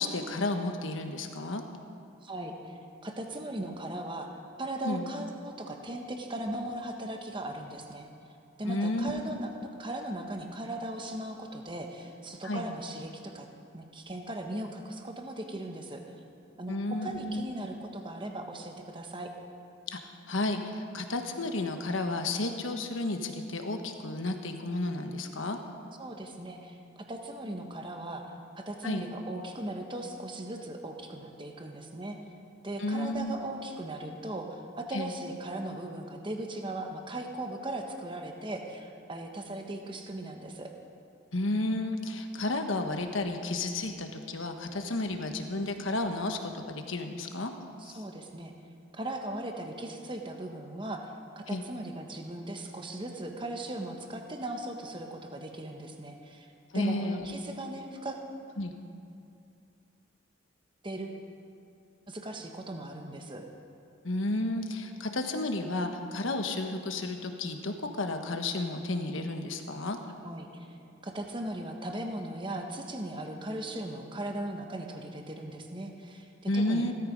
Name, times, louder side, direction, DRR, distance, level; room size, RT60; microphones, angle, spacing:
voice 1, 0.0-1.6 4.8-5.0 8.7-9.4 12.4-12.7 16.7-17.5 19.9-25.6 28.8-29.0 32.8-33.4 34.9-35.1 41.3-47.5 47.8-48.0 51.5-51.6 56.7-57.3 58.6-58.7 64.0-70.0 76.5-76.9, left 2 dB, 70° left, 5 dB, 1.3 m, -32 dB
voice 2, 2.2-2.5 3.0-4.3 4.6-8.1 8.6-9.5 9.8-13.5 13.7-16.0 16.6-19.3 26.0-28.2 28.6-32.2 32.6-40.7 47.8-48.5 48.9-56.5 56.7-58.2 60.8-61.2 62.1-63.5 70.2-70.7 71.0-76.9, right 1 dB, 25° right, 3 dB, 1.2 m, -38 dB
16.5 x 13.5 x 5.3 m, 2.5 s
head